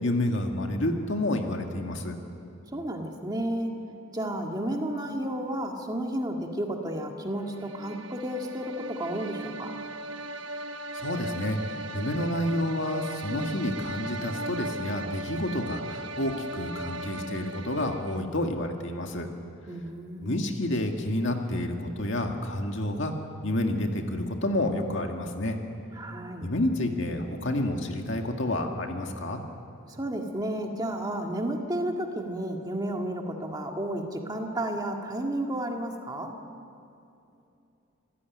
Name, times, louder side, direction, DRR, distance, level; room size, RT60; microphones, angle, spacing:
voice 1, 0.0-2.2 11.0-11.6 11.9-19.3 20.2-23.1 23.4-25.6 26.4-29.4, left 1 dB, 60° left, 3 dB, 2.1 m, -29 dB
voice 2, 2.7-3.7 4.1-9.7 19.7-20.4 25.9-26.5 29.9-36.3, right 1 dB, 20° right, 2 dB, 1.9 m, -32 dB
sound 1, 7.4-18.4, right 2 dB, 60° right, 1.1 m, -38 dB
26.5 x 16.0 x 9.5 m, 2.7 s
head